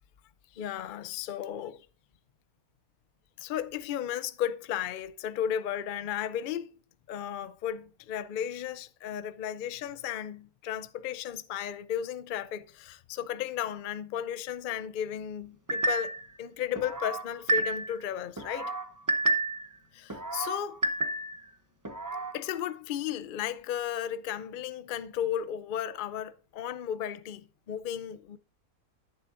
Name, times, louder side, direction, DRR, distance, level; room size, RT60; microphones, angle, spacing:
voice 1, 0.5-1.8 3.4-6.8 7.1-18.7 19.9-20.8 22.3-28.4, left 10 dB, 80° left, 0.4 m, -34 dB
sound 1, 15.7-16.3 16.7-18.0 18.4-19.7 20.1-21.4 21.8-22.3, right 2 dB, 20° right, 0.5 m, -30 dB
11.0 x 9.5 x 2.5 m
omnidirectional pair, 1.6 m